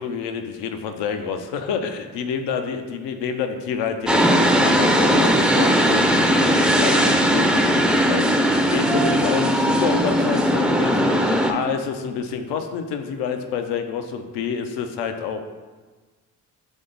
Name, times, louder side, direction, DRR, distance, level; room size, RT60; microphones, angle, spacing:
voice 1, 0.0-15.4, left 6 dB, 75° left, 7 dB, 0.6 m, -28 dB
sound 1, 4.0-11.5, equal, ahead, 0.4 m, -18 dB
3.5 x 3.4 x 3.9 m, 1.4 s
hypercardioid pair, 50°, 41 cm